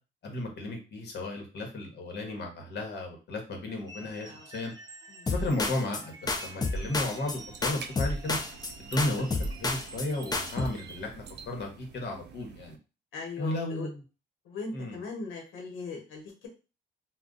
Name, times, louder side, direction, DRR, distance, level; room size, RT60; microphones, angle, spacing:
voice 1, 0.2-4.7 5.3-8.4 8.8-9.3 9.5-12.8 13.4-14.0 14.7-15.0, left 2 dB, 60° left, 2 dB, 1.1 m, -34 dB
sound 1, 3.9-11.1, right 2 dB, 20° right, 0.7 m, -49 dB
sound 2, 5.3-6.0 6.3-7.4 7.6-8.7 9.0-10.1 10.3-10.7, left 3 dB, 20° left, 0.4 m, -30 dB
sound 3, 6.7-12.8, right 5 dB, 60° right, 0.5 m, -49 dB
voice 2, 13.1-13.9 14.4-16.5, left 4 dB, 85° left, 0 dB, 1.0 m, -39 dB
2.3 x 2.2 x 3.8 m, 0.32 s
cardioid pair, 90°, 20 cm